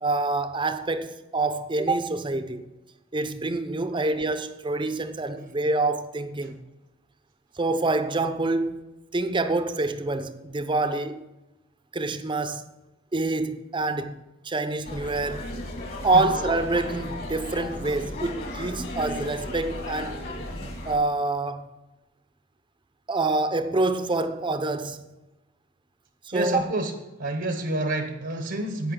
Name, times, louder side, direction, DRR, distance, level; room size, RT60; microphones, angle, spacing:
voice 1, 0.0-2.7 3.1-6.6 7.6-11.2 11.9-12.7 13.1-14.2 14.4-15.5 16.0-20.2 20.8-21.7 23.1-25.0 26.2-26.7, right 2 dB, 25° right, 0.7 m, -26 dB
sound 1, 14.8-21.0, left 1 dB, 50° left, 2.3 m, -35 dB
voice 2, 26.3-26.9 27.2-28.9, right 2 dB, 55° right, 0.9 m, -28 dB
16.0 x 5.4 x 3.8 m
head